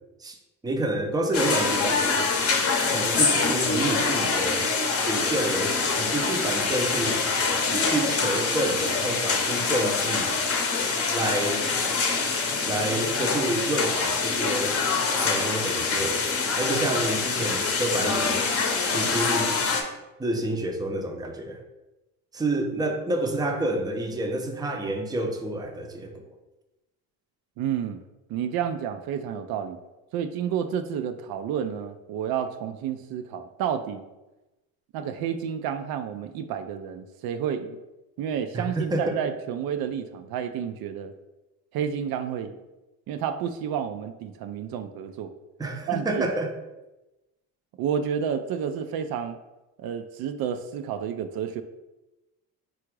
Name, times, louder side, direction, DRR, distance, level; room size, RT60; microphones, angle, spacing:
voice 1, 0.6-2.2 2.9-4.6 5.0-7.2 7.7-10.4 11.1-11.8 12.7-16.2 16.6-18.4 18.9-19.6 20.2-21.6 22.3-26.2 38.5-39.2 45.6-46.5, right 1 dB, 10° right, 3 dB, 0.5 m, -29 dB
sound 1, 1.3-19.8, left 4 dB, 40° left, 0.8 m, -25 dB
voice 2, 27.6-28.0 28.3-29.8 30.1-34.0 34.9-37.8 38.2-41.1 41.7-42.6 43.1-45.3 45.9-46.3 47.8-49.4 49.8-51.6, right 8 dB, 70° right, 8 dB, 0.5 m, -30 dB
3.7 x 2.4 x 4.5 m, 1.0 s
cardioid pair, 95°, 38 cm